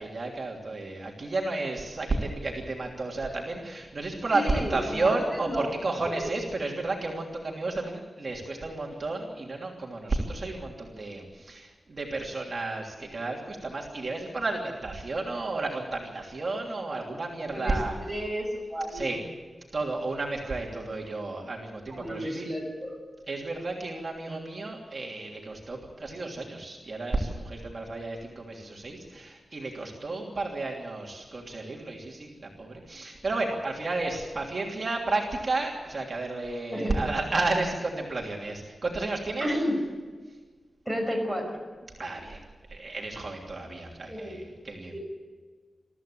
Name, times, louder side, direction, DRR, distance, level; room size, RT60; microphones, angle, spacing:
voice 1, 0.0-18.0 18.9-19.2 19.7-22.4 23.3-39.5 42.0-42.4 42.7-45.0, right 2 dB, 40° right, -1 dB, 3.1 m, -32 dB
voice 2, 4.3-5.2 5.4-5.7 6.0-6.3 17.5-17.8 18.1-19.2 21.9-23.0 36.7-37.0 39.4-39.8 40.9-41.6 44.1-44.4 44.9-45.0, equal, 5° left, 2 dB, 5.7 m, -32 dB
22.5 x 14.5 x 8.7 m, 1.4 s
wide cardioid pair, 135°, 0 cm